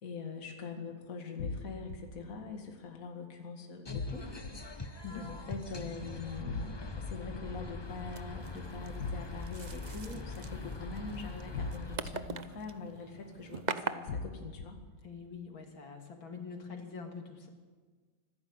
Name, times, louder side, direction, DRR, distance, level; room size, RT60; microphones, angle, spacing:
voice 1, 0.0-4.3 4.6-14.8, left 4 dB, 45° left, 3 dB, 2.4 m, -43 dB
sound 1, 1.4-2.0 3.9-4.5 6.5-7.0 9.0-9.6 11.5-12.1 14.1-14.6, left 4 dB, 60° left, 1.9 m, -37 dB
sound 2, 3.9-12.0, left 3 dB, 20° left, 0.7 m, -43 dB
sound 3, 7.8-13.9, right 5 dB, 85° right, 0.4 m, -43 dB
voice 2, 15.0-17.5, left 5 dB, 80° left, 3 dB, 3.2 m, -44 dB
25.5 x 15.0 x 8.0 m, 1.5 s
omnidirectional pair, 2.1 m